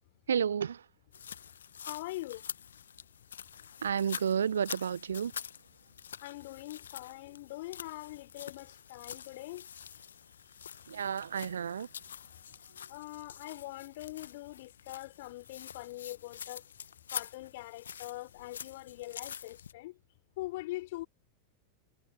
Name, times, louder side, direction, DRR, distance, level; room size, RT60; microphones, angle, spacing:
voice 1, 0.3-0.8 3.8-5.3 10.9-11.9, right 8 dB, 70° right, 1.3 m, -31 dB
sound 1, 1.1-19.7, left 8 dB, 65° left, 1.1 m, -46 dB
voice 2, 1.8-2.5 6.2-9.7 12.9-16.6 17.1-20.0 20.4-21.1, left 19 dB, 50° left, 5.0 m, -43 dB
figure-of-eight pair, 90°, 0 cm